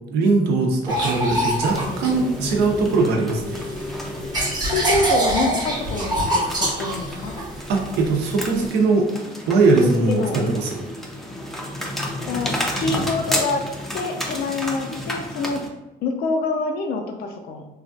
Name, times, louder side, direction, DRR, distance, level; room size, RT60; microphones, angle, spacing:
voice 1, 0.1-3.6 7.7-9.1 9.5-10.8, right 3 dB, 80° right, 1 dB, 0.6 m, -20 dB
sound 1, 0.9-2.9 3.4-8.7, right 1 dB, 25° right, 0.8 m, -25 dB
sound 2, 1.7-15.7, left 1 dB, ahead, 0.4 m, -31 dB
voice 2, 4.7-7.5 9.8-10.5 12.3-13.7 13.9-15.6 16.0-17.7, left 3 dB, 65° left, 4 dB, 0.4 m, -26 dB
3.1 x 2.3 x 2.5 m, 1.0 s
cardioid pair, 110°, 17 cm